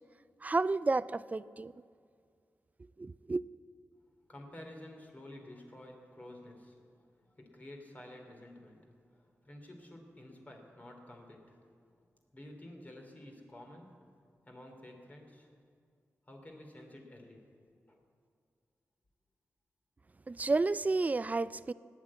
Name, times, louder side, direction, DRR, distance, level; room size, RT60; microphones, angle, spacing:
voice 1, 0.4-1.7 3.0-3.4 20.3-21.7, right 3 dB, 30° right, 17 dB, 0.3 m, -31 dB
voice 2, 4.3-12.0 12.3-14.0 14.5-15.5 16.3-17.4 17.9-18.0, left 1 dB, 30° left, 2 dB, 2.8 m, -51 dB
17.5 x 9.7 x 8.5 m, 2.2 s
wide cardioid pair, 105°, 6 cm